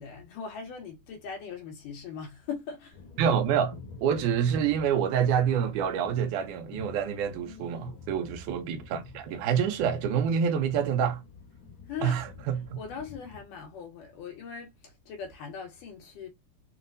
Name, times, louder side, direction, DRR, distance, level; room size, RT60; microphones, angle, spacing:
voice 1, 0.0-3.0 7.3-8.0 11.9-12.2 12.8-16.3, left 6 dB, 80° left, 3.0 m, -40 dB
sound 1, 2.9-13.4, left 5 dB, 45° left, 1.9 m, -50 dB
voice 2, 3.2-11.2 12.0-12.8, right 8 dB, 80° right, 2.1 m, -27 dB
sound 2, 3.5-10.5, left 4 dB, 65° left, 1.4 m, -48 dB
6.0 x 2.5 x 2.6 m
omnidirectional pair, 3.7 m